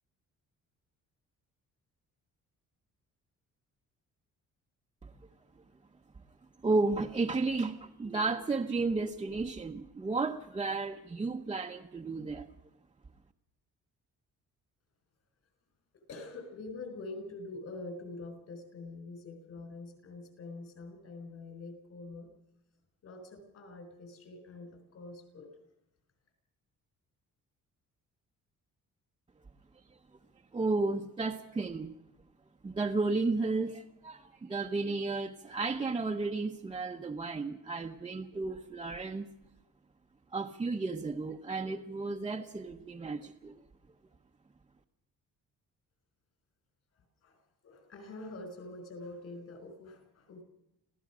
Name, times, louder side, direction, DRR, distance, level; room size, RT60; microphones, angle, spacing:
voice 1, 6.6-12.5 30.5-31.9 32.6-39.3 40.3-43.6, right 3 dB, 15° right, 1 dB, 0.8 m, -33 dB
voice 2, 16.1-22.3 23.0-25.5 47.2-50.4, left 2 dB, 50° left, 7 dB, 5.5 m, -45 dB
26.0 x 16.5 x 6.2 m, 0.85 s
cardioid pair, 175°, 31 cm